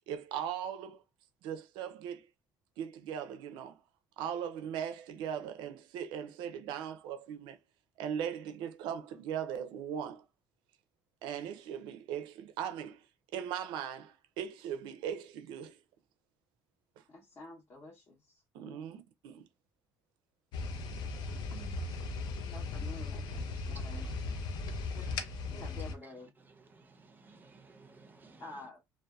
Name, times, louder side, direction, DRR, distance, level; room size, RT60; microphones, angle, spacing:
voice 1, 0.1-1.0 1.4-2.3 2.8-3.8 4.2-7.6 8.0-10.2 11.2-13.1 13.3-15.8 18.5-19.5, right 9 dB, 85° right, 0.4 m, -39 dB
voice 2, 17.1-19.0 21.5-21.8 22.4-24.1 24.9-25.1 25.4-26.3 28.4-28.8, left 2 dB, 35° left, 0.7 m, -50 dB
sound 1, 20.5-25.9, left 3 dB, 65° left, 0.4 m, -37 dB
voice 3, 23.6-24.1 24.5-25.3 25.5-25.6 26.7-28.4, right 3 dB, 25° right, 0.5 m, -57 dB
2.6 x 2.1 x 2.2 m
cardioid pair, 135°, 8 cm